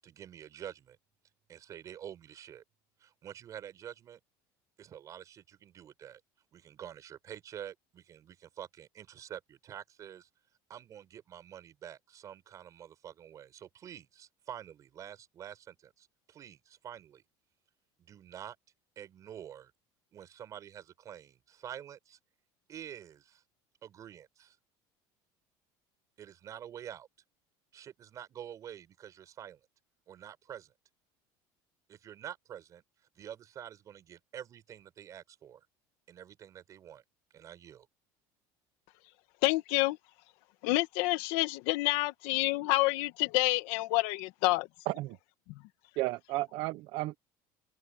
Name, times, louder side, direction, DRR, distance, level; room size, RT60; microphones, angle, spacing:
voice 1, 0.0-1.0 1.5-2.6 3.0-4.2 4.8-6.2 6.5-10.3 10.7-17.2 18.0-18.6 19.0-19.7 20.1-22.2 22.7-23.4 23.8-24.6 26.2-27.1 27.7-29.6 30.1-30.7 31.9-35.7 36.1-37.0 37.3-37.9, right 10 dB, 35° right, 7.1 m, -47 dB
voice 2, 39.4-40.0 40.6-44.7, left 21 dB, 75° left, 1.4 m, -28 dB
voice 3, 44.9-45.2 46.0-47.2, right 19 dB, 60° right, 0.8 m, -33 dB
cardioid pair, 150°, 10 cm